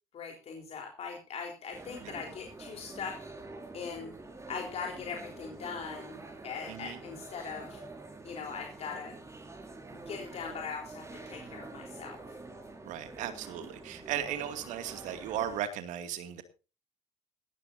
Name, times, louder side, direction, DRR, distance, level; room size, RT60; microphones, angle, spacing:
voice 1, 0.1-3.2 3.7-4.1 4.5-7.8 8.2-9.2 9.9-12.2, left 6 dB, 50° left, 2 dB, 3.8 m, -40 dB
sound 1, 1.7-15.6, right 2 dB, 20° right, 5.8 m, -47 dB
voice 2, 6.7-7.0 12.8-16.4, right 10 dB, 65° right, 9 dB, 2.4 m, -36 dB
19.0 x 13.5 x 2.7 m, 0.33 s
hypercardioid pair, 65°, 14 cm